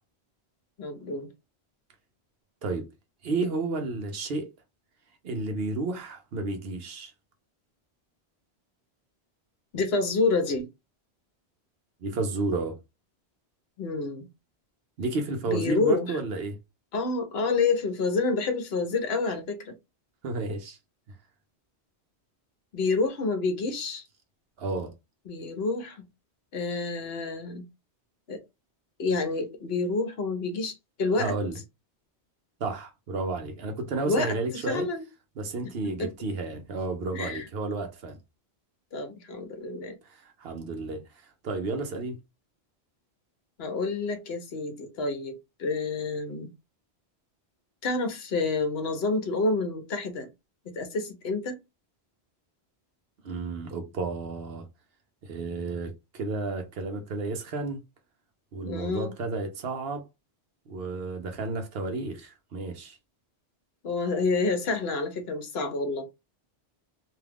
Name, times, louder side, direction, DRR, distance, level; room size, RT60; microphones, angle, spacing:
voice 1, 0.8-1.3 9.7-10.7 13.8-14.3 15.5-16.1 16.9-19.7 22.7-24.0 25.3-26.0 26.5-27.6 28.3-28.4 29.0-30.7 31.0-31.3 34.0-35.0 36.0-36.1 37.1-37.4 38.9-40.0 43.6-46.5 47.8-50.3 50.7-51.6 58.6-59.1 63.8-66.0, left 3 dB, 70° left, 1.0 m, -28 dB
voice 2, 3.2-4.5 5.2-7.1 12.0-12.8 15.0-16.6 20.2-20.8 24.6-24.9 31.1-31.6 32.6-34.9 35.4-38.2 40.0-41.0 41.4-42.2 53.2-54.7 55.2-57.8 58.5-60.1 60.7-63.0, right 3 dB, 65° right, 0.9 m, -32 dB
2.7 x 2.3 x 3.4 m
omnidirectional pair, 1.1 m